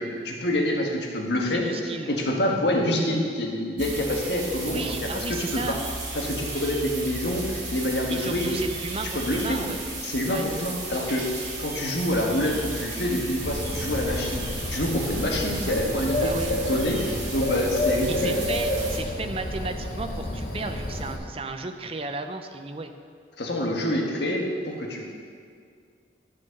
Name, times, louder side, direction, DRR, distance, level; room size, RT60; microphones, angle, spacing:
voice 1, 0.0-5.8 6.1-8.5 9.1-9.6 10.0-18.3 23.4-25.1, left 1 dB, 65° left, 0 dB, 1.4 m, -27 dB
voice 2, 1.5-2.1 2.4-2.6 4.7-5.8 8.1-9.8 10.3-10.4 16.2-16.5 18.1-22.9, right 3 dB, 30° right, 7 dB, 0.5 m, -34 dB
sound 1, 3.8-19.0, right 2 dB, 70° right, 2.4 m, -35 dB
Bird, 13.4-21.2, left 1 dB, 50° left, 1.0 m, -29 dB
11.5 x 4.5 x 6.5 m, 2.2 s
head